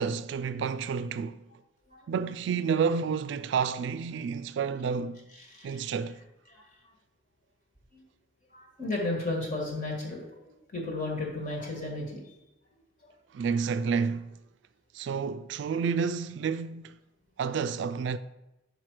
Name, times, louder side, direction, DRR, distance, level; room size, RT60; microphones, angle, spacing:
voice 1, 0.0-1.4 2.1-5.2 5.6-6.2 13.3-14.3 14.9-17.0 17.4-18.2, right 6 dB, 65° right, 0.3 m, -30 dB
voice 2, 5.4-5.9 6.5-6.6 7.9-8.0 8.5-12.2, left 2 dB, 45° left, 1.7 m, -34 dB
5.8 x 5.1 x 4.8 m
head